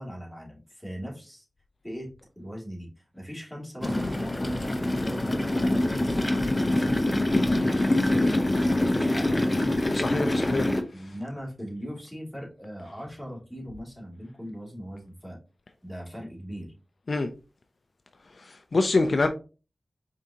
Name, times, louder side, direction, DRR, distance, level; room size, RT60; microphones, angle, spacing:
voice 1, 0.0-1.4 1.8-2.9 3.1-9.8 10.9-15.4 15.8-16.7, equal, ahead, 2.3 m, -39 dB
sound 1, 3.8-10.8, left 1 dB, 25° left, 0.7 m, -25 dB
voice 2, 9.9-10.7 11.0-11.1 17.1-17.3 18.3-19.3, left 3 dB, 60° left, 0.5 m, -26 dB
5.0 x 3.6 x 2.8 m
cardioid pair, 50°, 0 cm